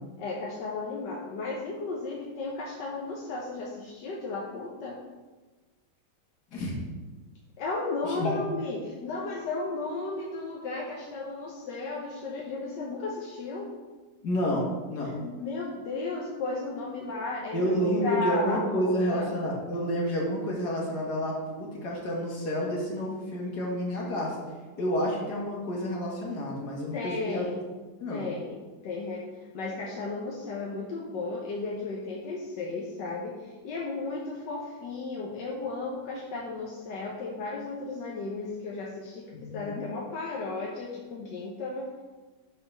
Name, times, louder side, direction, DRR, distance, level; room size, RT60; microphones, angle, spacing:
voice 1, 0.2-5.0 7.6-13.7 15.0-19.3 26.9-27.7 28.1-42.0, left 3 dB, 85° left, -3 dB, 1.6 m, -34 dB
voice 2, 14.2-15.1 17.5-24.4 24.8-27.5 28.0-28.2 39.3-39.9, equal, 70° left, -3 dB, 2.3 m, -29 dB
8.1 x 4.3 x 5.4 m, 1.3 s
omnidirectional pair, 1.8 m